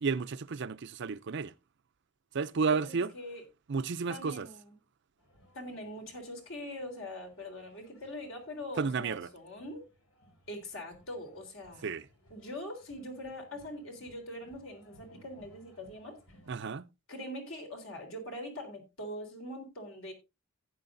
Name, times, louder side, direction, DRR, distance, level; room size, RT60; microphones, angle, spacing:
voice 1, 0.0-1.5 2.3-3.1 3.7-4.5 8.8-9.3 11.8-12.1 16.5-16.9, right 5 dB, 55° right, 0.5 m, -32 dB
voice 2, 2.7-3.4 4.1-4.7 5.5-9.9 10.5-11.9 12.3-16.2 17.1-20.1, left 1 dB, 65° left, 3.6 m, -43 dB
sound 1, 5.2-16.7, equal, 85° left, 4.0 m, -63 dB
14.5 x 9.6 x 2.6 m
head